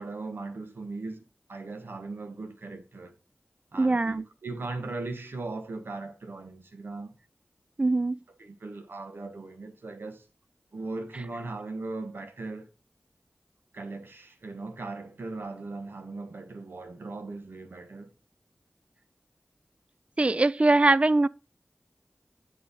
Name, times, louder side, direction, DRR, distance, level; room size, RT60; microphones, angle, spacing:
voice 1, 0.0-3.2 3.7-7.2 8.4-10.3 10.7-12.7 13.7-18.1, right 3 dB, 80° right, 1.1 m, -38 dB
voice 2, 3.8-4.2 7.8-8.2 20.2-21.3, right 2 dB, 35° right, 0.3 m, -22 dB
8.2 x 3.3 x 5.0 m
wide cardioid pair, 50°, 4 cm